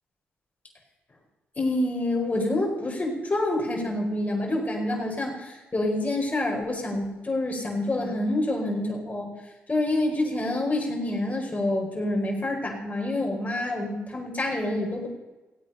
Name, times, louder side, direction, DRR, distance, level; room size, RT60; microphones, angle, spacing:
voice 1, 1.6-9.3 9.7-15.1, left 1 dB, 30° left, 1 dB, 4.8 m, -27 dB
17.0 x 8.7 x 5.6 m, 1.1 s
supercardioid pair, 55°, 5 cm